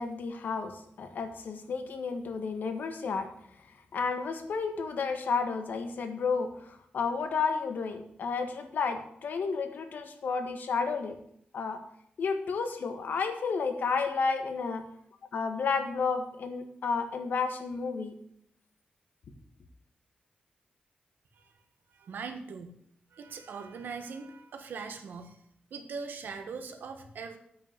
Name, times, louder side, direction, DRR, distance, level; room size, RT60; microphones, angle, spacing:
voice 1, 0.0-3.3 3.9-11.2 11.5-11.8 12.2-14.8 15.3-18.1, left 5 dB, 75° left, 7 dB, 1.5 m, -31 dB
voice 2, 21.9-22.7 23.1-25.4 25.7-27.4, right 5 dB, 85° right, 6 dB, 1.5 m, -41 dB
8.9 x 6.4 x 8.3 m, 0.68 s
wide cardioid pair, 140°, 3 cm